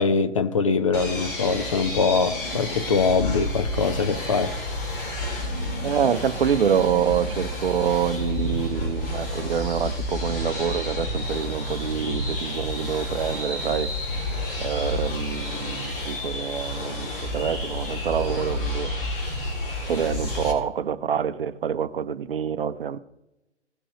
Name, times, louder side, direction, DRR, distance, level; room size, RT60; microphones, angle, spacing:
voice 1, 0.0-4.5, left 4 dB, 30° left, 0.4 m, -23 dB
sound 1, 0.9-20.5, left 1 dB, 50° left, 2.7 m, -30 dB
voice 2, 5.8-13.9 14.6-18.9 19.9-23.0, right 8 dB, 50° right, 0.7 m, -26 dB
16.5 x 6.2 x 3.0 m
figure-of-eight pair, 125°, 36 cm